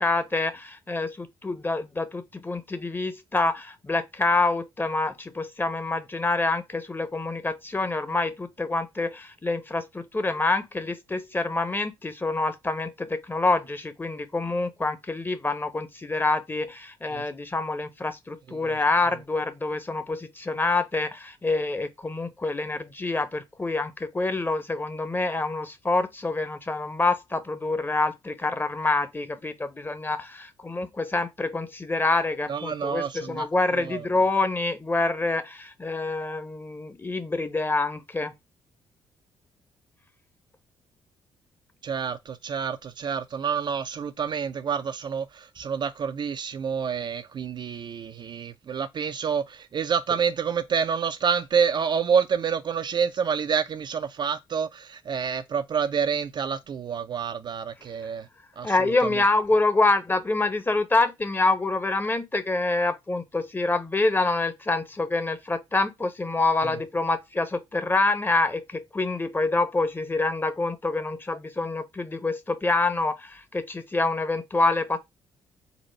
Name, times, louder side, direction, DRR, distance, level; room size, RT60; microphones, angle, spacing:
voice 1, 0.0-38.3 58.6-75.0, left 3 dB, 15° left, 0.8 m, -26 dB
voice 2, 32.5-34.1 41.8-58.3 58.6-59.2, right 7 dB, 40° right, 0.4 m, -28 dB
4.1 x 2.5 x 4.3 m
figure-of-eight pair, 45°, 12 cm